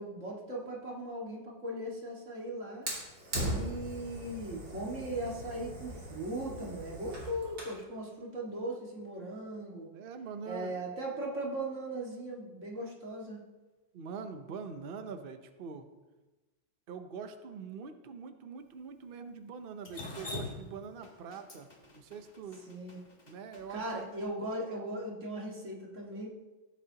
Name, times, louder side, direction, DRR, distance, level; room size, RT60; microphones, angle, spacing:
voice 1, 0.0-2.9 3.5-9.9 10.5-13.4 22.7-23.1 23.7-26.4, right 1 dB, 45° right, -3 dB, 2.2 m, -38 dB
Fire, 2.9-7.8, right 1 dB, 75° right, 3.4 m, -39 dB
voice 2, 9.9-10.8 13.9-15.9 16.9-22.7 23.3-24.1, right 5 dB, 90° right, 8 dB, 0.5 m, -44 dB
Drip, 19.8-24.0, left 2 dB, 25° left, 1.3 m, -43 dB
16.0 x 8.4 x 2.9 m, 1.2 s
omnidirectional pair, 2.0 m